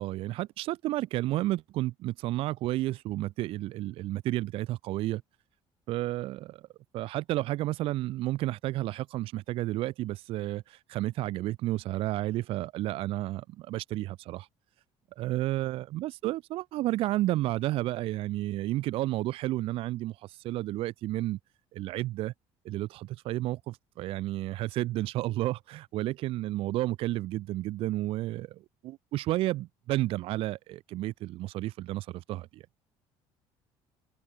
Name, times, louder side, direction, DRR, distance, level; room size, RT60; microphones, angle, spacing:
voice 1, 0.0-5.2 5.9-6.6 6.9-14.5 15.2-21.4 21.7-22.3 22.6-32.6, right 16 dB, 60° right, 0.6 m, -31 dB
cardioid pair, 155°, 11 cm